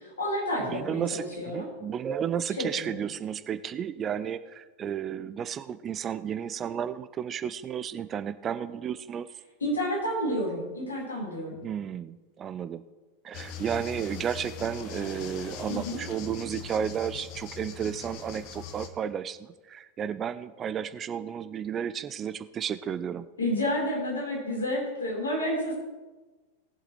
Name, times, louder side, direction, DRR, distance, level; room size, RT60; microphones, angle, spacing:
voice 1, 0.0-1.7 2.6-2.9 9.6-11.6 15.7-16.0 23.4-25.7, left 1 dB, 70° left, -3 dB, 4.0 m, -30 dB
voice 2, 0.6-9.3 11.6-12.8 13.2-23.2, right 8 dB, 25° right, 13 dB, 0.5 m, -33 dB
sound 1, 13.3-18.9, left 7 dB, 45° left, 1.0 m, -41 dB
20.0 x 7.6 x 3.1 m, 1.2 s
figure-of-eight pair, 90°, 0 cm